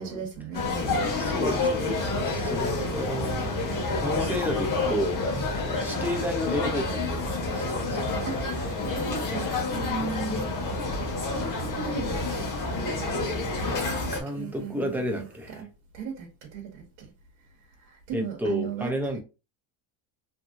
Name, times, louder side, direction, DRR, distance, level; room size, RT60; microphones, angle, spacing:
voice 1, 0.0-1.4 2.7-3.1 8.2-10.5 11.2-12.5 14.0-17.1 17.8-19.2, right 6 dB, 80° right, 0.9 m, -37 dB
sound 1, 0.5-14.2, left 3 dB, 40° left, 1.1 m, -29 dB
voice 2, 1.2-3.5 4.0-7.2 7.5-8.0 14.1-15.6 18.1-19.2, equal, 5° right, 0.4 m, -31 dB
sound 2, 1.4-15.6, right 1 dB, 30° right, 0.7 m, -46 dB
2.9 x 2.6 x 2.4 m
cardioid pair, 135°, 49 cm